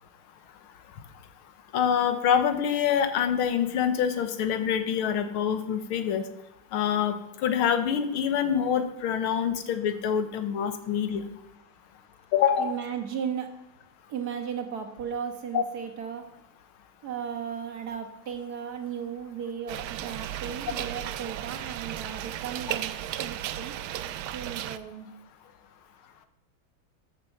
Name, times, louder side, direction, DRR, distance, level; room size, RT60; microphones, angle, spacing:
voice 1, 1.7-6.2 6.7-11.2 12.3-12.8 15.5-15.6, left 8 dB, 80° left, 9 dB, 1.9 m, -26 dB
voice 2, 12.6-13.5 14.1-16.2 17.0-22.9 23.2-23.7 24.3-25.1, right 8 dB, 50° right, 5 dB, 1.7 m, -35 dB
sound 1, 19.7-24.8, right 12 dB, 80° right, 1.4 m, -35 dB
13.5 x 6.8 x 5.9 m, 0.91 s
omnidirectional pair, 2.3 m